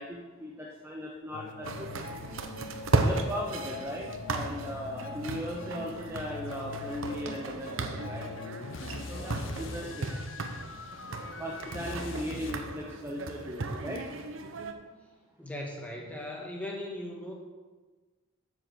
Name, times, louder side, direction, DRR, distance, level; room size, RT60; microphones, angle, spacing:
voice 1, 0.0-2.1 3.0-8.3 9.1-10.1 11.4-14.0, equal, 10° right, -2 dB, 0.7 m, -38 dB
sound 1, 1.3-12.6, left 3 dB, 60° left, 0.6 m, -42 dB
sound 2, 1.6-14.7, right 3 dB, 60° right, 0.8 m, -35 dB
voice 2, 15.4-17.3, left 1 dB, 5° left, -1 dB, 1.4 m, -38 dB
7.9 x 7.3 x 6.3 m, 1.3 s
head